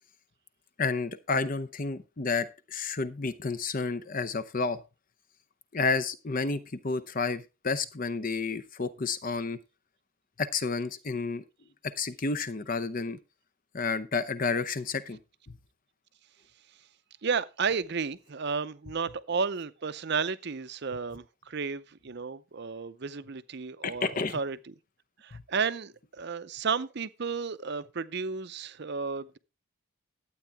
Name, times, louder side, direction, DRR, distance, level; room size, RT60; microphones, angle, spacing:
voice 1, 0.8-4.8 5.7-9.6 10.4-11.4 11.8-13.2 13.7-15.2 15.5-15.6 23.8-24.4 25.3-25.4, left 4 dB, 40° left, 0.7 m, -31 dB
voice 2, 17.2-24.6 25.2-29.4, right 5 dB, 50° right, 0.6 m, -32 dB
12.0 x 8.5 x 3.5 m
head